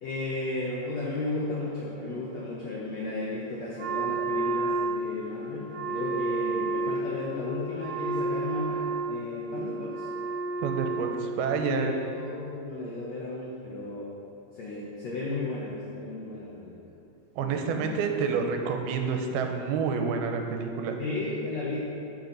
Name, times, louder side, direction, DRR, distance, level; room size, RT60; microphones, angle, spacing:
voice 1, 0.0-10.1 11.6-14.1 14.5-16.9 17.4-18.0 21.0-21.8, left 2 dB, 80° left, -5 dB, 1.5 m, -34 dB
Wind instrument woodwind instrument, 3.8-11.7, right 3 dB, 55° right, 2.6 m, -31 dB
voice 2, 10.6-11.9 17.4-21.0, right 5 dB, 85° right, 4 dB, 2.6 m, -28 dB
11.5 x 6.3 x 4.0 m, 2.7 s
omnidirectional pair, 4.4 m